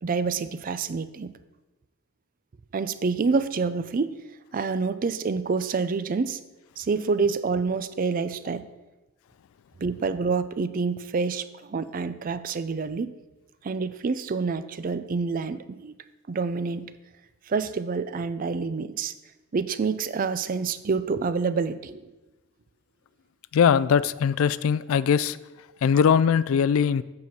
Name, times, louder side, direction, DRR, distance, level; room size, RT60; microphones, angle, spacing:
voice 1, 0.0-1.3 2.7-4.1 4.5-6.4 6.8-8.7 9.8-13.1 13.6-15.9 16.3-16.9 17.5-19.1 19.5-22.0, right 4 dB, 40° right, 13 dB, 0.4 m, -27 dB
voice 2, 23.5-25.4 25.8-27.0, left 7 dB, 75° left, 17 dB, 0.3 m, -21 dB
8.2 x 4.7 x 5.9 m, 1.1 s
head